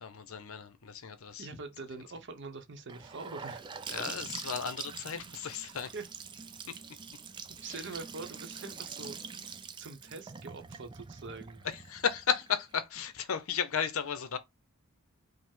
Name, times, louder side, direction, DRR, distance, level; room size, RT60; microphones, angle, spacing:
voice 1, 0.0-1.5 3.9-5.9 6.7-6.8 7.6-7.9 11.6-14.4, left 7 dB, 70° left, 0.7 m, -34 dB
voice 2, 1.4-3.6 5.9-6.1 7.6-9.2 9.8-11.6, right 3 dB, 55° right, 0.7 m, -44 dB
Gurgling / Sink (filling or washing) / Bathtub (filling or washing), 2.9-12.7, right 6 dB, 20° right, 0.3 m, -44 dB
5.3 x 2.1 x 3.6 m
head